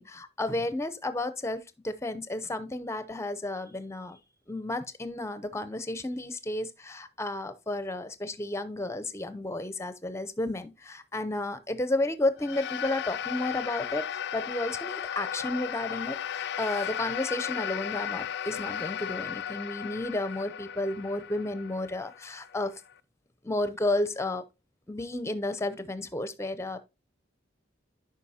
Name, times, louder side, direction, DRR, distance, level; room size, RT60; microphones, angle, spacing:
voice 1, 0.0-4.2 4.5-22.7 23.4-24.4 24.9-26.8, left 2 dB, 15° left, 0.5 m, -32 dB
sound 1, 12.4-22.9, left 9 dB, 60° left, 0.4 m, -35 dB
9.5 x 5.3 x 2.7 m
head